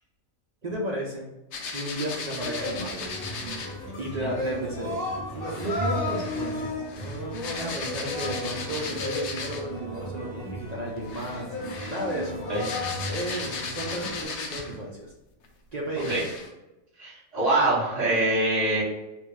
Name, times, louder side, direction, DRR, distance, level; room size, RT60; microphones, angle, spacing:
voice 1, 0.6-1.3 1.6-3.1 4.0-11.5 11.9-12.4 13.1-15.1 15.7-16.2, right 1 dB, 55° right, -3 dB, 0.4 m, -33 dB
sound 1, 1.5-3.8 5.5-9.8 11.0-14.9 15.4-15.5 15.9-16.5, left 4 dB, 65° left, 0.8 m, -37 dB
sound 2, 2.4-14.3, left 1 dB, 45° left, 1.2 m, -34 dB
voice 2, 17.0-18.8, right 2 dB, 30° right, -14 dB, 1.7 m, -24 dB
3.5 x 2.4 x 3.1 m, 0.98 s
omnidirectional pair, 1.4 m